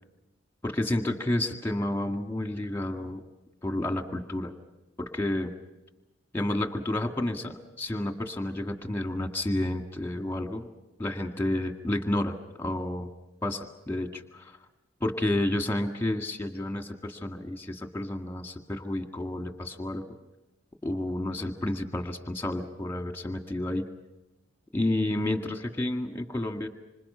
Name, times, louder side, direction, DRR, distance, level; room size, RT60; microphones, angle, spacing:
voice 1, 0.6-3.2 3.6-4.5 5.0-5.5 6.3-10.7 11.0-13.1 13.4-14.6 15.0-20.0 20.8-23.8 24.7-26.7, left 1 dB, 10° left, 5 dB, 1.9 m, -30 dB
26.5 x 26.5 x 5.7 m, 1.0 s
head